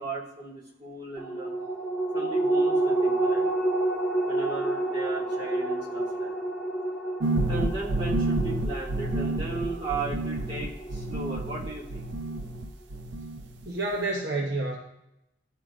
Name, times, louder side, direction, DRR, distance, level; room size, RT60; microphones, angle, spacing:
voice 1, 0.0-1.5 2.1-3.4 4.2-6.5 7.5-12.1, right 3 dB, 30° right, -8 dB, 2.0 m, -36 dB
sound 1, 1.2-12.0 12.4-12.5, right 2 dB, ahead, 0.6 m, -29 dB
sound 2, 7.2-12.7 12.9-13.6, right 2 dB, 85° right, 0.5 m, -29 dB
voice 2, 13.6-14.8, right 2 dB, 65° right, -1 dB, 0.9 m, -29 dB
11.0 x 3.7 x 2.4 m, 0.83 s
head